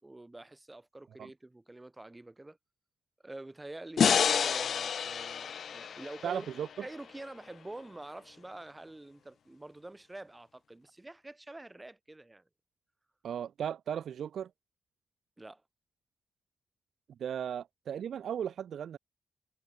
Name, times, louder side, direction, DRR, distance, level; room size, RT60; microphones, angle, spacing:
voice 1, 0.0-2.6 3.2-6.5 6.8-12.4 15.4-15.6, right 2 dB, 15° right, 4.6 m, -47 dB
sound 1, 4.0-7.2, left 7 dB, 65° left, 0.5 m, -29 dB
voice 2, 6.2-6.9 13.2-14.5 17.2-19.0, right 9 dB, 85° right, 0.9 m, -36 dB
wide cardioid pair, 130°, 0 cm